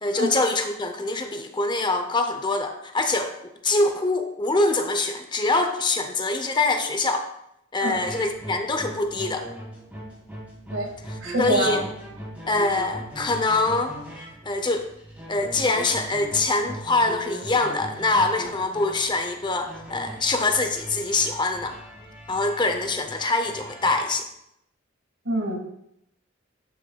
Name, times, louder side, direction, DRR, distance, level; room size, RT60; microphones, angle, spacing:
voice 1, 0.0-3.3 3.6-7.3 7.7-9.5 11.4-11.8 12.5-14.0 14.4-14.9 15.3-21.8 22.3-24.3, left 3 dB, 25° left, 6 dB, 0.7 m, -24 dB
sound 1, 7.9-24.2, right 1 dB, 10° right, 2.3 m, -40 dB
voice 2, 11.2-11.8 25.3-25.6, right 1 dB, 80° right, 0 dB, 1.9 m, -25 dB
11.0 x 6.4 x 2.3 m, 0.78 s
head